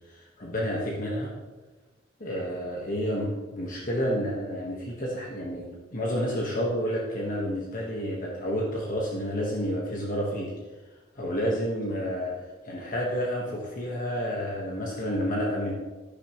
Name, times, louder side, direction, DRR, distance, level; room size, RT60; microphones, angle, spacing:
voice 1, 0.1-1.3 2.2-10.5 11.1-12.3 12.6-15.7, equal, 45° left, -2 dB, 1.4 m, -30 dB
10.5 x 10.5 x 3.1 m, 1.2 s
head